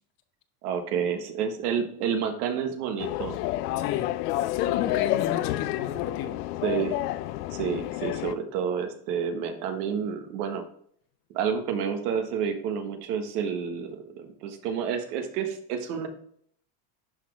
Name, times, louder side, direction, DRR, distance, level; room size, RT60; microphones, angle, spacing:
voice 1, 0.6-3.4 6.6-7.0 7.5-10.6 11.3-16.1, right 7 dB, 80° right, 1.5 m, -29 dB
sound 1, 3.0-8.3, left 15 dB, 90° left, 0.6 m, -29 dB
voice 2, 3.8-4.1 4.5-6.4, left 9 dB, 50° left, 1.2 m, -33 dB
11.5 x 4.1 x 3.3 m
supercardioid pair, 115°, 46 cm